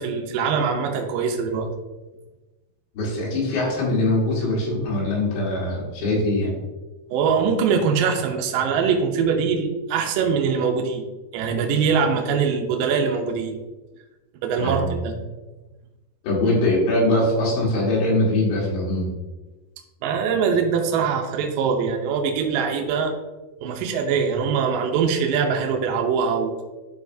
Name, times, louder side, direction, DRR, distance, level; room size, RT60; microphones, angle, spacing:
voice 1, 0.0-1.7 7.1-11.1 11.3-13.6 14.4-15.2 20.0-23.1 23.6-26.6, right 6 dB, 85° right, 2 dB, 1.9 m, -22 dB
voice 2, 3.0-6.6 14.6-15.0 16.2-19.1, left 1 dB, 85° left, -4 dB, 4.3 m, -22 dB
12.0 x 4.2 x 2.7 m, 1.2 s
omnidirectional pair, 5.1 m